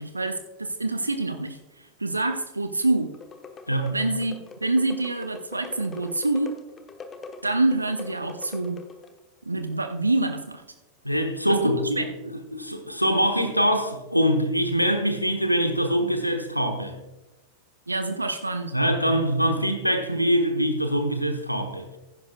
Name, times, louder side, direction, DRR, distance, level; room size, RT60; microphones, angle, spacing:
voice 1, 0.0-3.1 3.9-6.5 7.4-8.8 9.5-10.6 11.4-12.1 17.9-18.7, right 2 dB, 80° right, 8 dB, 0.6 m, -26 dB
sound 1, 3.1-9.2, left 4 dB, 20° left, 1.1 m, -43 dB
voice 2, 11.0-12.0 12.5-16.9 18.7-21.8, equal, 90° left, 6 dB, 1.1 m, -23 dB
15.5 x 10.5 x 2.3 m, 1.1 s
figure-of-eight pair, 90°, 0 cm